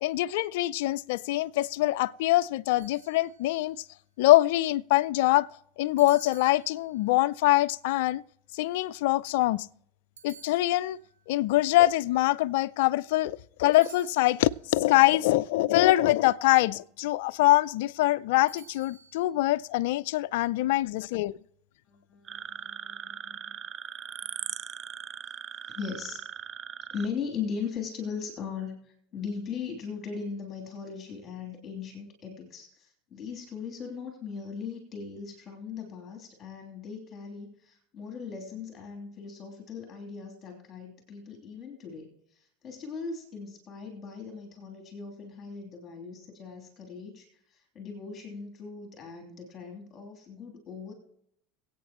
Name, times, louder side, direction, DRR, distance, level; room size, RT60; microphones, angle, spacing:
voice 1, 0.0-3.8 4.2-5.5 5.8-8.2 8.5-9.7 10.2-11.0 11.3-21.4, left 17 dB, 70° left, 0.4 m, -24 dB
sound 1, 2.8-3.7 6.0-7.2 10.2-11.2 13.7-14.7 18.5-19.3, right 5 dB, 90° right, 1.7 m, -52 dB
voice 2, 21.9-23.6 24.4-24.5 25.7-26.2 26.9-50.9, left 5 dB, 35° left, 3.1 m, -39 dB
sound 2, 22.3-27.1, right 8 dB, 35° right, 0.5 m, -39 dB
22.5 x 8.7 x 3.0 m
hypercardioid pair, 95°, 0 cm